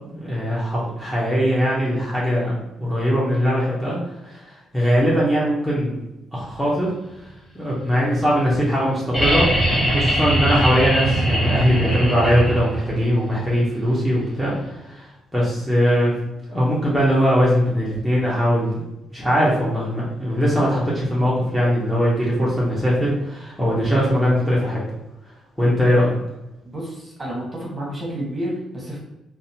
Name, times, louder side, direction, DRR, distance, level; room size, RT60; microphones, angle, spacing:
voice 1, 0.1-2.5 2.8-4.0 4.2-5.9 6.3-6.9 7.5-15.1 15.3-16.1 16.5-18.8 19.1-24.8 25.6-26.2, equal, ahead, -7 dB, 0.7 m, -20 dB
sound 1, 9.1-12.9 14.6-14.7, right 1 dB, 20° left, 1.3 m, -21 dB
voice 2, 26.6-29.0, right 1 dB, 25° right, -3 dB, 1.0 m, -30 dB
2.6 x 2.1 x 2.7 m, 0.93 s
cardioid pair, 90°, 0 cm